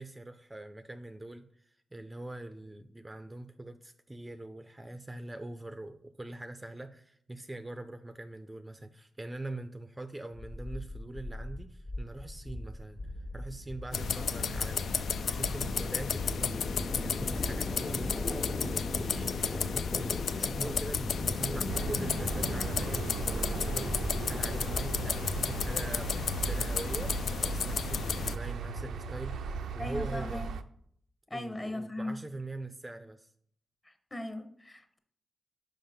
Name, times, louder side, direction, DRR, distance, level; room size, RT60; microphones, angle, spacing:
voice 1, 0.0-30.4 31.3-33.3, right 2 dB, 15° right, 9 dB, 0.4 m, -43 dB
sound 1, 10.4-27.4, left 1 dB, 60° left, 1.4 m, -40 dB
sound 2, 13.9-28.4, left 6 dB, 75° left, 0.3 m, -33 dB
sound 3, 21.7-30.6, right 5 dB, 90° right, 0.4 m, -37 dB
voice 2, 29.8-30.5 31.3-32.2 33.8-35.0, left 1 dB, 20° left, 7 dB, 0.9 m, -38 dB
5.6 x 5.3 x 5.1 m, 0.68 s
cardioid pair, 75°, 0 cm